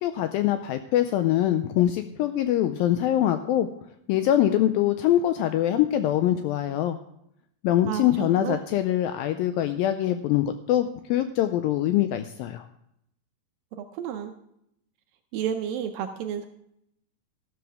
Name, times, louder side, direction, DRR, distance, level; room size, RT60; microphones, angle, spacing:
voice 1, 0.0-3.7 4.1-7.0 7.6-12.6, left 12 dB, 85° left, 9 dB, 2.1 m, -23 dB
voice 2, 7.9-8.6 13.8-14.4 15.3-16.5, right 8 dB, 80° right, 6 dB, 2.1 m, -31 dB
13.0 x 12.0 x 3.5 m, 0.75 s
omnidirectional pair, 4.6 m